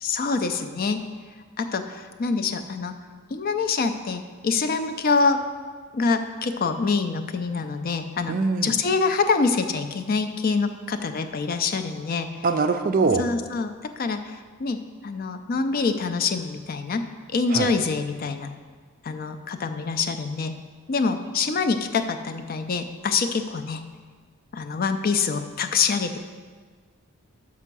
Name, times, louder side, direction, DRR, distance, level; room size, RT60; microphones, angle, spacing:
voice 1, 0.0-1.0 1.6-2.9 3.3-5.4 5.9-12.3 13.2-13.7 14.0-14.8 15.0-17.0 17.3-18.5 19.0-20.6 20.9-23.8 24.5-26.2, left 4 dB, 45° left, 8 dB, 0.4 m, -25 dB
voice 2, 8.3-8.7 12.4-13.2 17.5-17.7, right 4 dB, 40° right, 8 dB, 0.4 m, -22 dB
6.0 x 5.5 x 6.0 m, 1.5 s
head